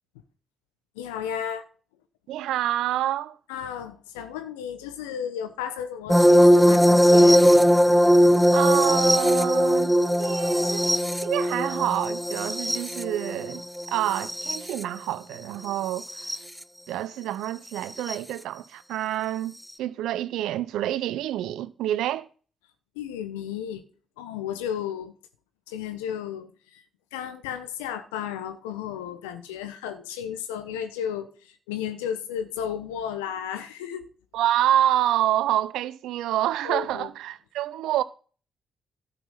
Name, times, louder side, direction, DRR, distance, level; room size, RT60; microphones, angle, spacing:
voice 1, 0.9-1.6 3.5-7.5 22.9-23.8 24.2-25.1 25.7-26.8 27.1-34.1 36.6-37.1, left 9 dB, 90° left, 1.0 m, -33 dB
voice 2, 2.3-3.4 8.5-10.9 11.2-13.6 13.9-16.1 16.9-19.5 19.8-22.3 34.3-38.0, right 12 dB, 75° right, 0.6 m, -27 dB
sound 1, 6.1-14.8 16.1-16.4 18.1-18.2, equal, 5° left, 0.7 m, -19 dB
12.0 x 5.7 x 5.5 m
hypercardioid pair, 45°, 0 cm